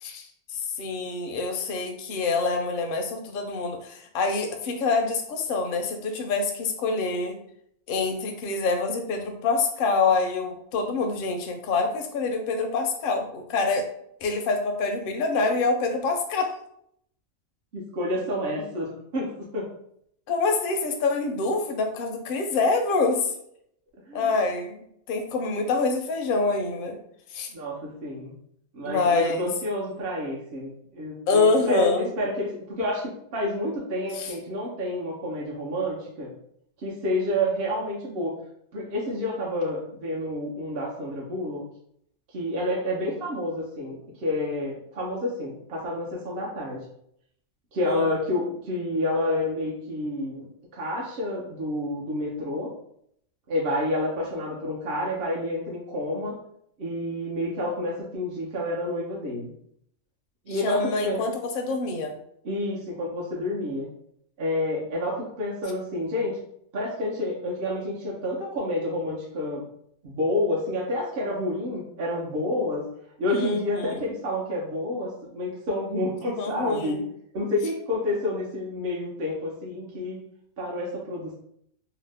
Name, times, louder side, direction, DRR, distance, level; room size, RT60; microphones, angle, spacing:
voice 1, 0.0-7.4 7.9-13.8 14.2-16.5 20.3-23.3 24.1-24.8 25.1-27.0 27.3-27.5 28.8-29.5 31.3-32.1 34.1-34.3 47.8-48.1 60.5-62.1 73.3-74.1 76.4-77.0, left 3 dB, 60° left, 4 dB, 0.6 m, -26 dB
voice 2, 17.7-19.7 24.1-24.3 27.5-28.3 28.7-36.3 36.8-38.3 38.7-41.6 42.3-46.8 47.7-50.5 50.7-52.7 53.5-56.4 56.8-59.5 60.5-61.2 62.4-63.9 64.4-66.4 66.7-69.6 70.0-72.8 73.2-77.0 77.3-80.2 80.6-81.3, left 1 dB, 60° right, -4 dB, 0.8 m, -29 dB
2.8 x 2.0 x 3.3 m, 0.70 s
omnidirectional pair, 1.3 m